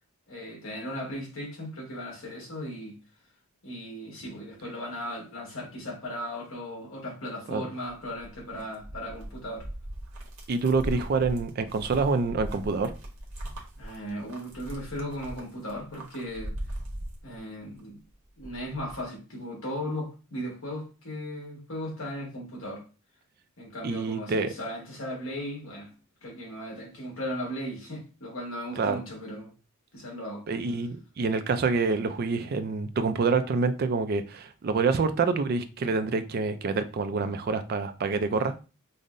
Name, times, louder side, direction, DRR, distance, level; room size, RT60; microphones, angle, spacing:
voice 1, 0.3-3.0 3.6-9.7 10.9-11.2 13.8-16.5 17.2-18.0 18.4-22.9 23.6-25.9 26.2-29.5 29.9-30.4, equal, 70° left, 1.4 m, -37 dB
sound 1, 7.9-17.8 18.1-19.0, right 1 dB, 80° right, 1.0 m, -40 dB
voice 2, 10.5-12.9 23.8-24.5 28.8-29.0 30.5-38.5, right 4 dB, 45° right, 0.3 m, -27 dB
5.2 x 2.1 x 2.5 m
head